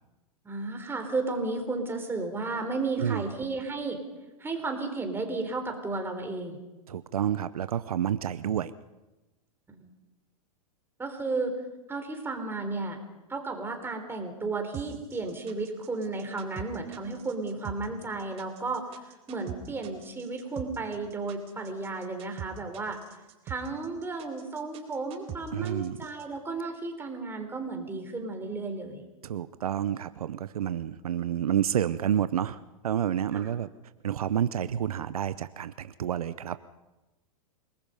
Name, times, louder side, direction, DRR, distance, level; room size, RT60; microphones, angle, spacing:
voice 1, 0.4-4.0 4.4-6.6 9.7-9.9 11.0-11.5 11.9-13.0 13.3-19.0 19.3-23.0 23.5-29.0 33.3-33.5, right 3 dB, 10° right, 5 dB, 3.9 m, -33 dB
voice 2, 6.9-8.7 25.5-26.0 29.2-33.7 34.0-36.6, right 10 dB, 80° right, 14 dB, 0.8 m, -29 dB
sound 1, 14.7-26.2, right 10 dB, 35° right, 3.6 m, -42 dB
28.0 x 20.0 x 5.4 m, 1.0 s
hypercardioid pair, 115°, 19 cm